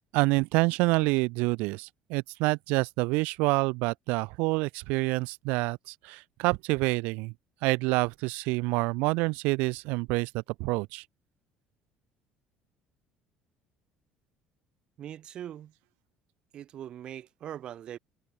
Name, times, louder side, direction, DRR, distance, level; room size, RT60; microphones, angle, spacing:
voice 1, 0.1-7.3 7.6-10.3 10.6-11.1, right 26 dB, 85° right, 0.6 m, -27 dB
voice 2, 15.0-15.7 16.5-18.0, right 10 dB, 40° right, 1.8 m, -41 dB
cardioid pair, 170°, 3 cm